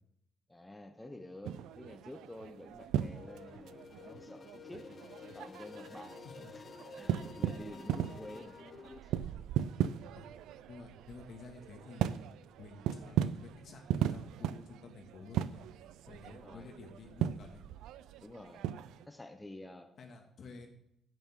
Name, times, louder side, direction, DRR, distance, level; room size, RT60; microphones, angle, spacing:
voice 1, 0.5-6.3 6.5-8.6 9.0-9.2 16.3-16.7 18.2-18.6 19.0-19.9, left 1 dB, 10° left, 5 dB, 0.8 m, -50 dB
sound 1, 1.4-19.0, right 10 dB, 85° right, 0.4 m, -38 dB
sound 2, 3.0-9.0, left 5 dB, 40° left, 0.6 m, -51 dB
voice 2, 10.7-12.2 12.6-15.6 16.1-17.6 20.0-20.7, left 4 dB, 60° left, 2 dB, 2.1 m, -51 dB
11.0 x 9.1 x 3.8 m, 0.77 s
cardioid pair, 90°, 0 cm